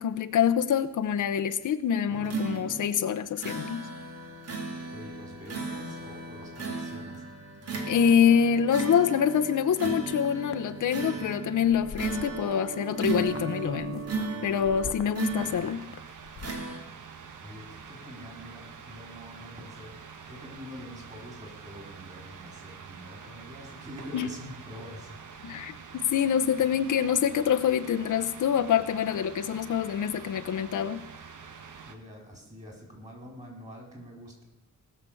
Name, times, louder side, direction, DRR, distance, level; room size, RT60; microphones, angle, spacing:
voice 1, 0.0-3.9 7.9-14.0 14.4-15.8 24.1-24.3 25.4-31.0, left 8 dB, 75° left, 8 dB, 0.8 m, -26 dB
sound 1, 2.1-15.9 16.4-16.8, right 3 dB, 50° right, 2.3 m, -35 dB
voice 2, 4.9-7.2 17.4-20.0 20.3-25.2 31.9-34.4, equal, 25° right, 1 dB, 4.7 m, -45 dB
sound 2, 10.1-10.6 11.1-11.4 11.6-12.8 13.0-16.7, left 8 dB, 45° left, 0.6 m, -44 dB
sound 3, 15.4-31.9, right 6 dB, 80° right, 1.5 m, -46 dB
19.0 x 6.9 x 7.0 m, 1.0 s
wide cardioid pair, 135°, 31 cm